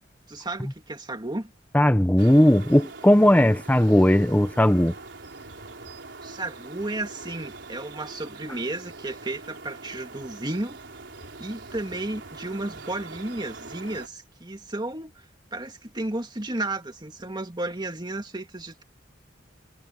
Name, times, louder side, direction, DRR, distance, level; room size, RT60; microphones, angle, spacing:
voice 1, 0.3-1.5 6.2-10.8 11.4-15.2 15.5-18.8, right 2 dB, 25° right, 2.2 m, -33 dB
voice 2, 1.7-4.9, left 1 dB, 10° left, 0.8 m, -18 dB
sound 1, 2.2-14.1, right 3 dB, 65° right, 4.6 m, -43 dB
head